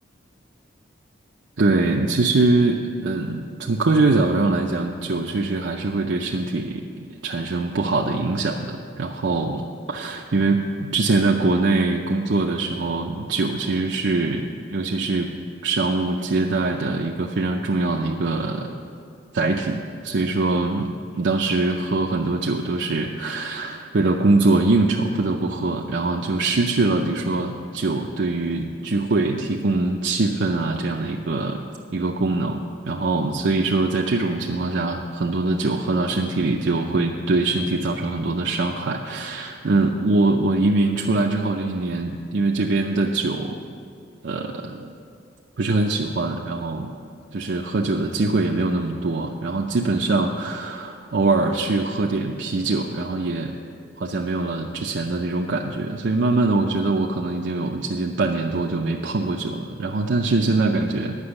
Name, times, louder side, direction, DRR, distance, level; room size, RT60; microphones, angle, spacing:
voice 1, 1.6-15.3 15.6-18.7 19.3-20.9 21.2-31.6 31.9-32.6 32.9-43.6 44.2-44.9 45.6-46.9 47.3-53.5 54.0-61.2, right 3 dB, 65° right, 0 dB, 0.6 m, -23 dB
9.7 x 6.1 x 8.7 m, 2.4 s
head